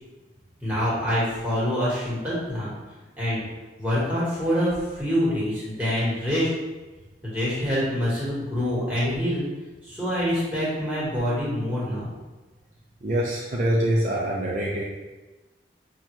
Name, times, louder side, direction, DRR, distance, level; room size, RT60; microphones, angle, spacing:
voice 1, 0.6-2.7 3.2-3.4 3.8-6.5 7.2-9.4 9.8-12.1, equal, 10° right, -9 dB, 1.4 m, -25 dB
voice 2, 13.0-14.8, right 1 dB, 45° right, -4 dB, 0.4 m, -24 dB
5.6 x 2.3 x 3.0 m, 1.2 s
head